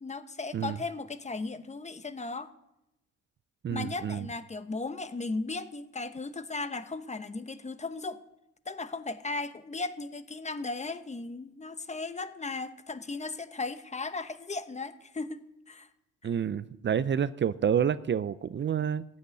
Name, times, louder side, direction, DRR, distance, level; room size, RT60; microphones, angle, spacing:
voice 1, 0.0-2.5 3.7-8.2 8.7-15.9, left 3 dB, 25° left, 12 dB, 1.0 m, -36 dB
voice 2, 3.6-4.3 16.2-19.1, right 8 dB, 40° right, 15 dB, 0.5 m, -28 dB
15.0 x 6.5 x 9.5 m, 0.88 s
cardioid pair, 90°, 30 cm